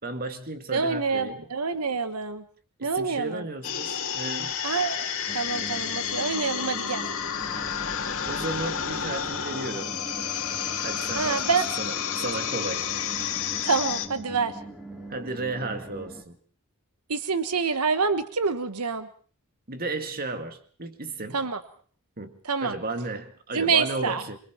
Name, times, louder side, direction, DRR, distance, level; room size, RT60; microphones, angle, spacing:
voice 1, 0.0-1.4 2.8-4.6 8.3-9.9 10.8-11.4 11.8-12.9 15.1-16.4 19.7-21.4 22.2-24.4, right 2 dB, 45° right, 7 dB, 2.1 m, -34 dB
voice 2, 0.7-2.4 2.8-3.4 4.6-5.1 5.3-7.1 11.1-11.6 13.6-14.6 17.1-19.1 21.3-21.6 22.4-22.7 23.5-24.2, right 5 dB, 85° right, 11 dB, 1.2 m, -26 dB
sound 1, 3.6-14.1, left 8 dB, 65° left, 2.5 m, -30 dB
sound 2, 5.3-16.2, right 1 dB, ahead, 3.0 m, -42 dB
26.5 x 23.0 x 4.5 m, 0.42 s
head